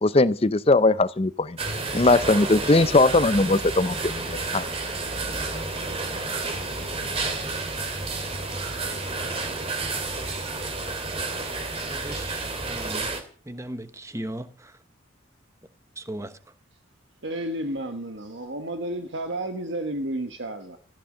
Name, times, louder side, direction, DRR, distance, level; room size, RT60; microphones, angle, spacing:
voice 1, 0.0-1.6 1.9-4.7, left 2 dB, 30° left, 0.6 m, -20 dB
sound 1, 1.6-13.2, right 3 dB, 30° right, 2.4 m, -30 dB
voice 2, 11.9-13.1 13.5-14.5 16.0-16.3, right 1 dB, 15° right, 1.1 m, -36 dB
voice 3, 17.2-20.8, right 1 dB, 65° right, 1.3 m, -31 dB
15.5 x 10.5 x 6.6 m
head